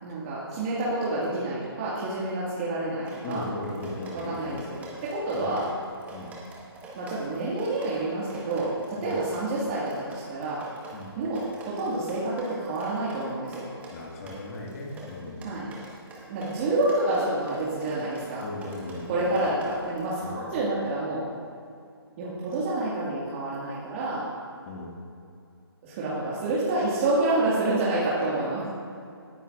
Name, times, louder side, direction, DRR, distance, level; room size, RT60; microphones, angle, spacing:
voice 1, 0.0-3.4 4.2-5.6 6.9-10.6 11.2-13.7 15.4-15.7 16.3-18.4 19.1-21.2 22.2-24.2 25.8-28.7, right 2 dB, 30° right, -9 dB, 2.1 m, -28 dB
Drip, 3.0-20.0, right 2 dB, 10° right, 1.4 m, -46 dB
voice 2, 3.2-4.7 5.3-5.6 6.1-6.4 9.0-9.2 10.9-11.2 13.9-15.5 18.4-19.4 20.2-20.5 24.6-25.0, left 2 dB, 35° left, -1 dB, 2.1 m, -37 dB
17.5 x 9.8 x 2.6 m, 2.4 s
figure-of-eight pair, 145°, 13 cm